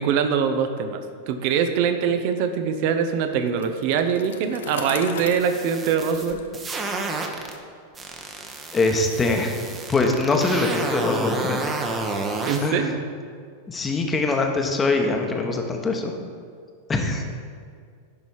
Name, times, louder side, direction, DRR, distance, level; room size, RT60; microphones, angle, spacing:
voice 1, 0.0-6.4 12.4-13.0, right 7 dB, 45° right, 7 dB, 0.8 m, -23 dB
Bicycle, 3.5-7.3, left 7 dB, 60° left, 0.6 m, -39 dB
sound 1, 5.3-7.5 7.9-12.6, right 3 dB, 20° right, 1.0 m, -30 dB
voice 2, 8.7-9.6 9.9-11.8 12.6-12.9 13.7-16.1 16.9-17.2, left 3 dB, 15° left, 3 dB, 1.1 m, -23 dB
10.5 x 5.4 x 4.8 m, 2.1 s
figure-of-eight pair, 90°, 0 cm